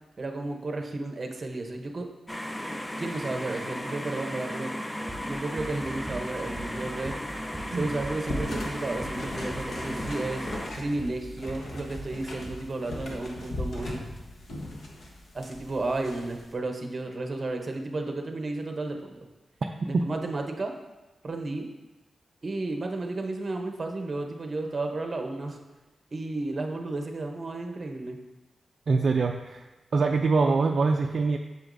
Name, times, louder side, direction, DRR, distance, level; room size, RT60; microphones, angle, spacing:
voice 1, 0.2-2.1 3.0-4.7 5.3-7.1 7.7-10.5 10.8-14.0 15.3-19.1 19.9-20.7 21.2-21.7 22.4-25.6 26.1-28.2, right 2 dB, 35° right, 4 dB, 0.8 m, -32 dB
sound 1, 2.3-10.7, equal, 10° left, 0.4 m, -35 dB
sound 2, 5.1-12.9, right 2 dB, 10° right, 1.6 m, -43 dB
sound 3, 8.3-16.5, left 1 dB, 55° left, 1.1 m, -39 dB
voice 2, 28.9-29.7 29.9-31.4, right 4 dB, 50° right, 2 dB, 0.4 m, -24 dB
7.8 x 6.9 x 2.6 m, 1.1 s
wide cardioid pair, 150°, 0 cm